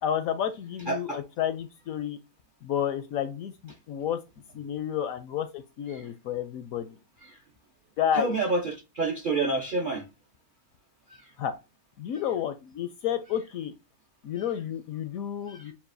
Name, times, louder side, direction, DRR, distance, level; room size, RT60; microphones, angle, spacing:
voice 1, 0.0-2.2 2.6-4.2 4.5-6.9 8.0-8.3 11.4-11.5 12.0-13.7 14.2-15.7, left 9 dB, 70° left, 0.8 m, -30 dB
voice 2, 0.9-1.2 5.9-6.1 7.2-7.4 8.1-10.1 11.2-11.3 14.4-14.5 15.5-15.7, right 3 dB, 55° right, 0.6 m, -29 dB
7.1 x 2.4 x 2.5 m
omnidirectional pair, 1.8 m